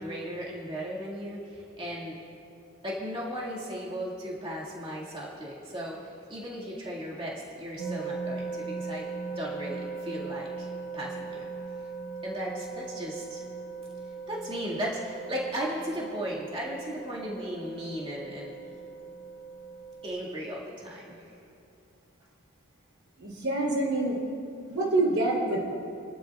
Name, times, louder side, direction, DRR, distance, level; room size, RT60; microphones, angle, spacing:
voice 1, 0.0-2.2 2.8-9.1 9.4-11.5 12.2-13.4 14.3-18.5 20.0-21.3, equal, 25° right, -5 dB, 2.1 m, -36 dB
sound 1, 7.8-20.1, right 4 dB, 35° left, 3.1 m, -39 dB
voice 2, 23.2-24.2 24.7-25.7, right 2 dB, 80° right, -3 dB, 3.6 m, -26 dB
30.0 x 11.5 x 2.5 m, 2.7 s
head